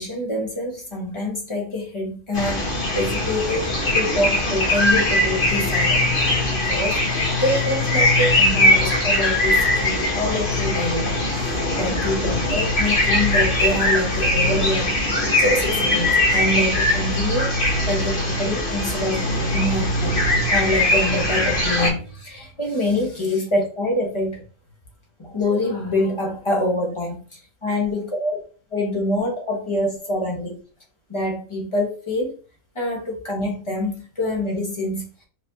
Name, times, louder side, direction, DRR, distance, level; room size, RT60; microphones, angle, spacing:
voice 1, 0.0-6.2 6.5-15.1 15.4-17.5 17.9-24.4 25.2-28.4 28.7-30.6 31.1-32.4 32.7-35.1, left 1 dB, 20° left, 1.2 m, -25 dB
sound 1, 2.3-21.9, left 1 dB, 40° left, 1.3 m, -21 dB
4.5 x 3.0 x 2.7 m
omnidirectional pair, 1.5 m